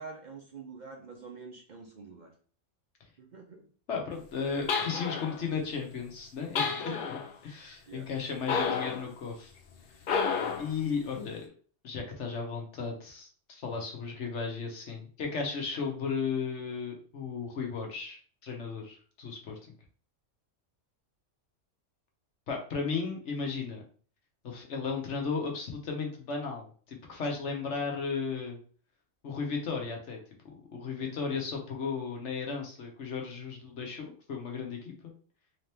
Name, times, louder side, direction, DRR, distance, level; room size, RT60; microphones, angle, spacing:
voice 1, 0.0-2.3 3.2-3.7 6.8-7.0 7.9-8.5 31.0-31.1, right 4 dB, 50° right, 0.6 m, -46 dB
voice 2, 3.9-9.5 10.6-11.4 11.8-19.6 22.5-23.8 24.4-28.6 29.2-30.2 30.4-34.9, left 5 dB, 70° left, 1.3 m, -35 dB
sound 1, 4.7-5.4 6.6-7.3 8.5-9.1 10.0-10.7, left 5 dB, 55° left, 0.7 m, -30 dB
3.7 x 2.9 x 3.4 m
omnidirectional pair, 1.2 m